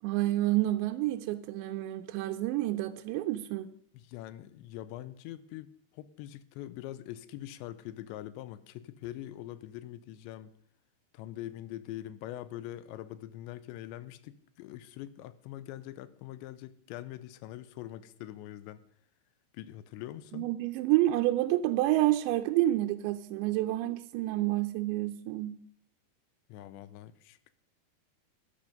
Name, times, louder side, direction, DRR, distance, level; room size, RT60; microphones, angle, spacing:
voice 1, 0.0-3.7 20.3-25.6, right 15 dB, 85° right, 2.9 m, -29 dB
voice 2, 3.9-10.5 11.1-18.8 19.5-20.5 26.5-27.5, left 13 dB, 85° left, 2.9 m, -43 dB
13.5 x 11.0 x 5.2 m
omnidirectional pair, 5.1 m